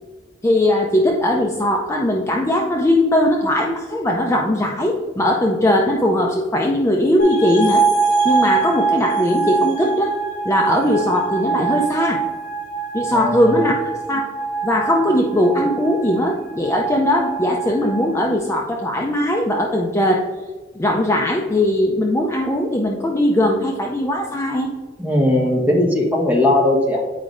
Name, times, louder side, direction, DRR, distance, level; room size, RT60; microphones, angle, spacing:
voice 1, 0.4-7.9 8.2-10.1 10.4-12.2 12.9-13.8 14.1-14.3 14.6-20.2 20.8-24.7, left 1 dB, 15° left, 0 dB, 0.5 m, -19 dB
sound 1, 7.2-18.3, right 5 dB, 55° left, 1.5 m, -24 dB
voice 2, 13.1-13.6 25.0-27.2, left 1 dB, 10° right, -2 dB, 1.2 m, -18 dB
9.2 x 4.8 x 2.5 m, 1.4 s
head